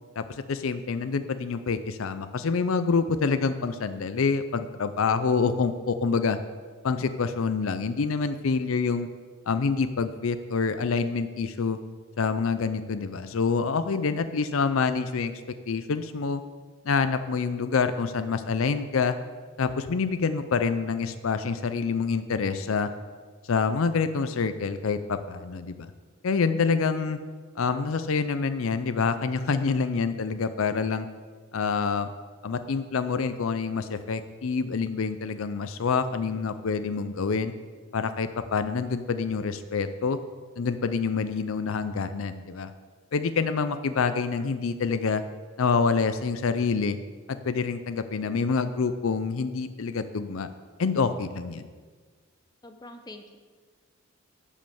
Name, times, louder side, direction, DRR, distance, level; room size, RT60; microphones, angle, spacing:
voice 1, 0.2-6.4 6.8-9.1 9.5-11.8 12.2-15.3 15.7-16.4 16.9-19.2 19.6-22.9 23.4-25.9 26.2-27.2 27.6-31.1 31.5-32.1 32.4-37.5 37.9-40.2 40.6-42.7 43.1-45.2 45.6-47.0 47.3-50.5 50.8-51.7, left 5 dB, 70° left, 11 dB, 0.5 m, -27 dB
voice 2, 52.6-53.4, left 2 dB, 20° left, 6 dB, 0.8 m, -44 dB
11.5 x 5.3 x 7.1 m, 1.5 s
head